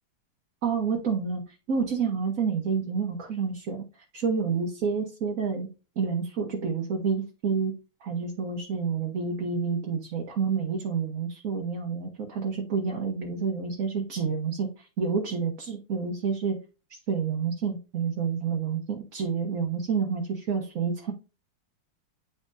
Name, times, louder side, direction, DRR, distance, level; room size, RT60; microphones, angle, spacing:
voice 1, 0.6-1.4 1.7-3.8 4.1-5.7 6.0-7.7 8.0-16.6 17.1-21.1, right 5 dB, 45° right, 1 dB, 1.4 m, -29 dB
9.5 x 6.0 x 2.7 m, 0.31 s
omnidirectional pair, 2.3 m